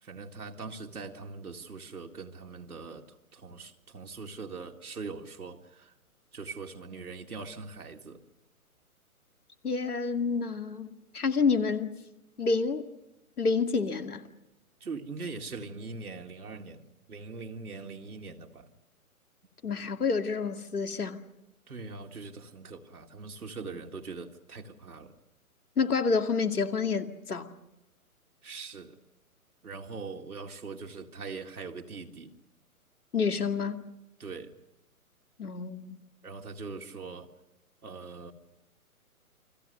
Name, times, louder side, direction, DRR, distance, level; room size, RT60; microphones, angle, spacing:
voice 1, 0.0-5.9 6.3-8.2 14.8-18.7 21.7-25.2 28.4-29.0 29.6-32.3 34.2-34.6 36.2-37.3 37.8-38.3, right 4 dB, 80° right, 2.2 m, -42 dB
voice 2, 9.6-11.9 12.4-12.8 13.4-14.2 19.6-21.2 25.8-27.5 33.1-33.8 35.4-36.0, left 4 dB, 80° left, 2.3 m, -28 dB
29.5 x 23.0 x 6.7 m
figure-of-eight pair, 135°, 44 cm